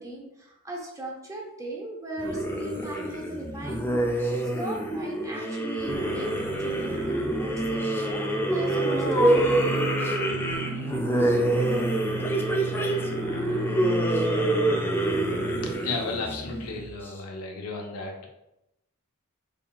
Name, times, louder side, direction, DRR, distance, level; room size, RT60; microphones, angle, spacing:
voice 1, 0.0-6.3 6.6-9.8, right 1 dB, 15° right, -1 dB, 0.7 m, -38 dB
sound 1, 2.2-17.1, right 1 dB, 10° left, 0.4 m, -26 dB
sound 2, 5.9-15.8, right 2 dB, 60° right, 0.6 m, -35 dB
voice 2, 15.6-18.3, left 3 dB, 75° left, 1 dB, 0.6 m, -33 dB
3.9 x 3.6 x 2.2 m, 0.87 s
head